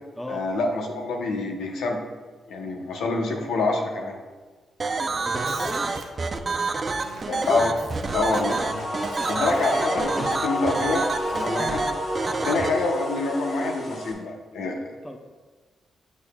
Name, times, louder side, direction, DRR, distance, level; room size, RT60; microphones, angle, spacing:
voice 1, 0.3-2.0 2.5-4.2 7.3-7.8 8.1-8.6 9.3-11.9 12.4-14.8, left 3 dB, 85° left, 1 dB, 0.9 m, -26 dB
sound 1, 4.8-12.7, right 3 dB, 40° right, 0.5 m, -27 dB
voice 2, 5.0-5.9 15.0-15.2, left 1 dB, 10° left, 3 dB, 0.7 m, -36 dB
sound 2, 5.4-11.5, right 3 dB, 80° right, 0.8 m, -41 dB
sound 3, 8.0-14.1, left 1 dB, 55° left, 1.7 m, -31 dB
7.1 x 6.5 x 2.3 m, 1.4 s
cardioid pair, 75°, 0 cm